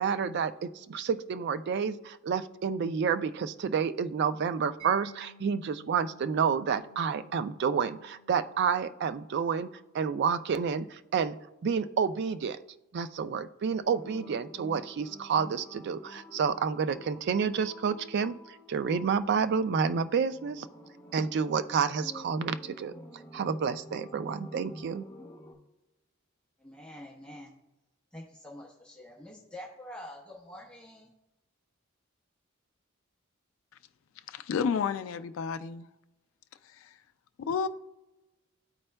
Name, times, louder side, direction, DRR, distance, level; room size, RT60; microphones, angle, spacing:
voice 1, 0.0-9.7 9.9-11.4 11.6-12.6 12.9-18.3 18.7-20.7 21.1-22.9 23.3-25.0, right 6 dB, 55° right, 12 dB, 0.3 m, -29 dB
Mallet percussion, 4.8-11.6, right 3 dB, 80° right, 2.3 m, -57 dB
sound 1, 13.8-25.5, left 1 dB, 20° left, 1.2 m, -49 dB
voice 2, 26.6-27.5 28.1-31.1, left 1 dB, 5° left, -4 dB, 0.7 m, -46 dB
voice 3, 34.3-35.9 36.6-37.0 37.4-37.7, left 6 dB, 70° left, 11 dB, 0.3 m, -31 dB
11.5 x 4.3 x 2.2 m, 0.99 s
head